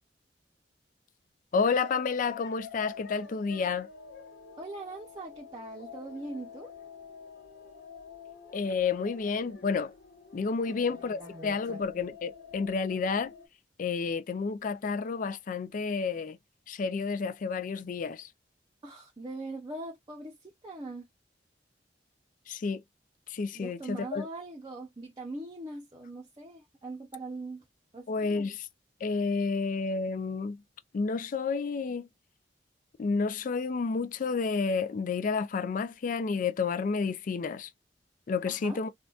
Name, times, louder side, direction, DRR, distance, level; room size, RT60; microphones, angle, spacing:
voice 1, 1.5-3.9 8.5-9.9 10.3-13.3 13.8-16.4 16.7-18.3 22.5-22.8 23.3-24.3 28.1-28.7 29.0-30.6 30.9-32.1 33.0-37.7 38.3-38.9, left 5 dB, 50° left, 0.4 m, -30 dB
sound 1, 1.6-13.5, left 5 dB, 80° left, 1.3 m, -48 dB
voice 2, 4.6-6.7 10.7-11.8 18.8-21.1 23.5-27.6 27.9-28.5 38.5-38.8, right 2 dB, 25° right, 0.6 m, -41 dB
3.8 x 2.3 x 2.3 m
head